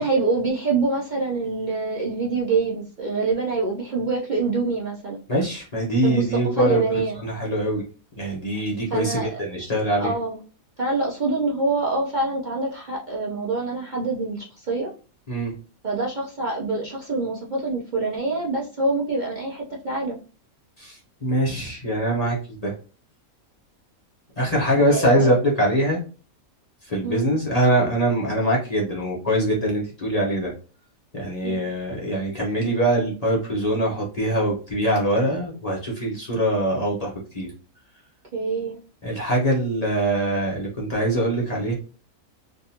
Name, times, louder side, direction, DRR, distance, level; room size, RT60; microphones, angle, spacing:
voice 1, 0.0-5.2 6.0-7.2 8.9-9.4 9.9-10.4 10.8-14.9 15.8-20.2 24.7-25.3 27.0-27.2 31.4-31.6 38.3-38.8, right 3 dB, 50° right, -3 dB, 0.6 m, -25 dB
voice 2, 5.3-6.8 7.2-7.8 8.2-10.1 15.3-15.5 20.8-22.7 24.4-26.0 26.8-30.5 31.1-37.5 39.0-41.7, right 1 dB, 30° left, -5 dB, 1.0 m, -23 dB
3.7 x 2.6 x 2.8 m, 0.36 s
omnidirectional pair, 1.5 m